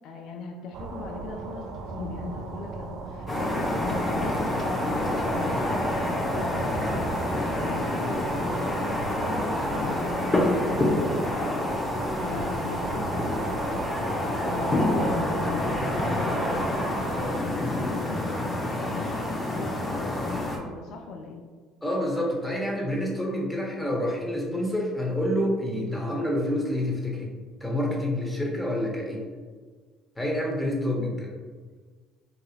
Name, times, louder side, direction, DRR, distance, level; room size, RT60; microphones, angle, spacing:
voice 1, 0.0-21.4, left 3 dB, 65° left, 2 dB, 0.4 m, -40 dB
sound 1, 0.7-17.4, right 4 dB, 60° right, 0.4 m, -37 dB
sound 2, 3.3-20.6, left 1 dB, 30° left, 0.8 m, -27 dB
voice 2, 21.8-27.3 27.6-29.2 30.2-31.3, left 1 dB, 5° left, -2 dB, 1.0 m, -28 dB
3.9 x 2.7 x 2.4 m, 1.5 s
hypercardioid pair, 60°, 0 cm